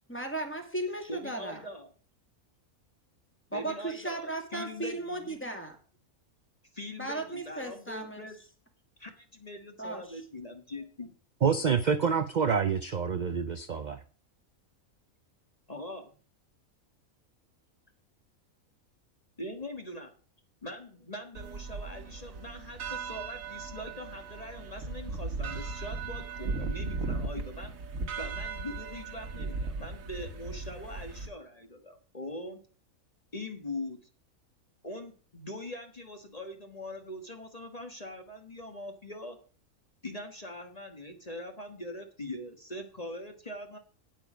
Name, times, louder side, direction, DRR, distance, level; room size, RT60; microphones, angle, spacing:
voice 1, 0.1-1.6 3.5-5.8 7.0-8.3 9.8-10.2, right 2 dB, 10° left, 2.3 m, -36 dB
voice 2, 1.1-1.9 3.5-5.4 6.7-8.4 9.0-11.1 15.7-16.1 19.4-20.1 20.6-27.7 28.1-32.6 33.3-34.0 34.8-39.4 40.0-43.8, left 1 dB, 30° left, 1.5 m, -42 dB
voice 3, 11.4-14.0, right 6 dB, 50° right, 0.5 m, -27 dB
sound 1, 21.4-31.3, right 4 dB, 70° right, 1.7 m, -37 dB
9.4 x 9.1 x 5.1 m
omnidirectional pair, 1.5 m